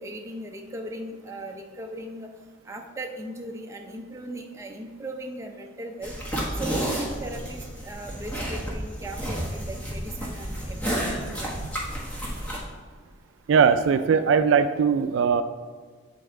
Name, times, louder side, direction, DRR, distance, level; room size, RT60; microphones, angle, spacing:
voice 1, 0.0-2.3 2.7-6.1 6.6-11.6, right 1 dB, 15° right, 2 dB, 0.5 m, -38 dB
sound 1, 6.0-12.6, equal, 5° left, 1.1 m, -31 dB
voice 2, 13.5-15.4, right 6 dB, 70° right, 10 dB, 0.3 m, -20 dB
8.4 x 5.3 x 3.7 m, 1.5 s
head